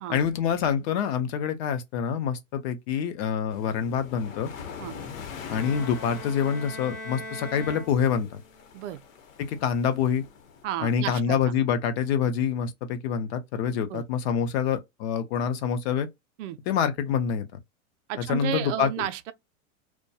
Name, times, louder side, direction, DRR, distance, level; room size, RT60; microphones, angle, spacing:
voice 1, 0.1-4.5 5.5-8.4 9.4-10.2 10.8-16.1 16.7-17.5 18.3-18.9, left 7 dB, 50° left, 0.6 m, -26 dB
sound 1, 3.5-10.6, left 6 dB, 70° left, 0.9 m, -43 dB
Bowed string instrument, 5.5-8.6, left 1 dB, 5° left, 0.6 m, -40 dB
voice 2, 10.6-11.5 13.9-14.0 16.4-16.6 18.1-19.3, right 12 dB, 60° right, 0.5 m, -32 dB
2.2 x 2.2 x 2.7 m
hypercardioid pair, 120°, 41 cm